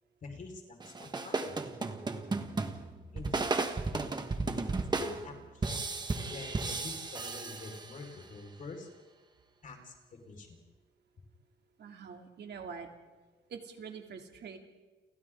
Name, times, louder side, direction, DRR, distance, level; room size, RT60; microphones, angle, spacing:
voice 1, 0.2-1.7 3.1-3.4 4.7-5.8 6.2-8.9 9.6-9.9 10.2-10.6, left 3 dB, 40° left, 2 dB, 4.9 m, -46 dB
sound 1, 0.8-8.2, right 3 dB, 20° right, 1.6 m, -35 dB
voice 2, 11.8-12.9 13.5-14.6, right 6 dB, 60° right, 3 dB, 2.8 m, -45 dB
30.0 x 28.5 x 3.8 m, 1.3 s
wide cardioid pair, 170°, 20 cm